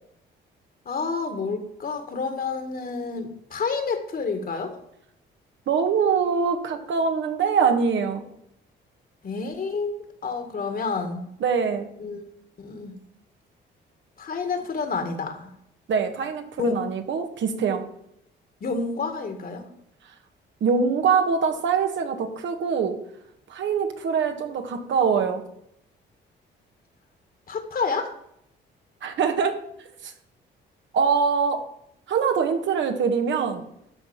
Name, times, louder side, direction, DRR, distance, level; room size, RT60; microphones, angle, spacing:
voice 1, 0.9-4.8 9.2-11.2 12.0-12.3 12.6-13.0 14.2-15.5 16.6-16.8 18.6-19.7 27.5-28.1, left 4 dB, 45° left, 7 dB, 2.0 m, -29 dB
voice 2, 5.7-8.2 11.4-11.9 15.9-17.8 20.6-22.9 23.5-25.4 29.0-29.5 30.0-30.1 30.9-31.6 32.1-33.6, right 6 dB, 70° right, 6 dB, 1.6 m, -23 dB
12.5 x 4.2 x 7.4 m, 0.75 s
cardioid pair, 90°, 20 cm